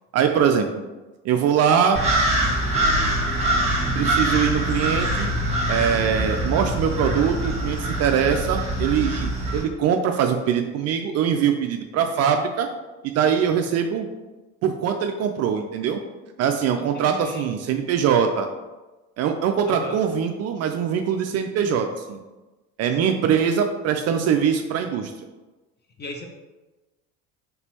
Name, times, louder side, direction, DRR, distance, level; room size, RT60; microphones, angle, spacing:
voice 1, 0.1-0.8 1.2-2.0 3.9-5.3 5.7-12.7 13.0-14.1 14.6-16.0 16.4-18.5 19.2-22.2 22.8-25.1, right 7 dB, 45° right, 5 dB, 0.4 m, -22 dB
sound 1, 1.9-9.6, right 1 dB, 15° right, 1.4 m, -24 dB
voice 2, 16.8-17.5 19.7-20.0 22.9-23.2 26.0-26.2, left 2 dB, 25° left, 2 dB, 0.8 m, -37 dB
4.2 x 3.5 x 2.8 m, 1.2 s
hypercardioid pair, 80°, 38 cm